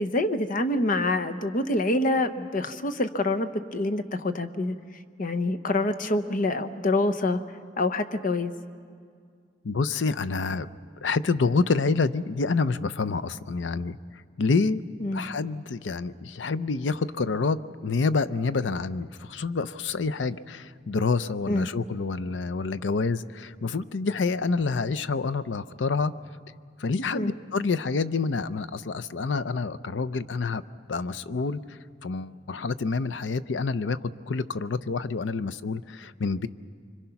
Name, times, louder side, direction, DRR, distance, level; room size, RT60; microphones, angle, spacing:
voice 1, 0.0-4.7 5.2-7.4 7.8-8.5 15.0-15.2 21.5-21.7 27.1-27.3, left 2 dB, 45° left, 9 dB, 0.9 m, -26 dB
voice 2, 9.6-10.7 11.0-14.0 14.4-14.8 15.1-26.2 26.8-30.6 30.9-36.5, left 4 dB, 75° left, 15 dB, 0.6 m, -27 dB
26.0 x 24.5 x 5.8 m, 2.2 s
head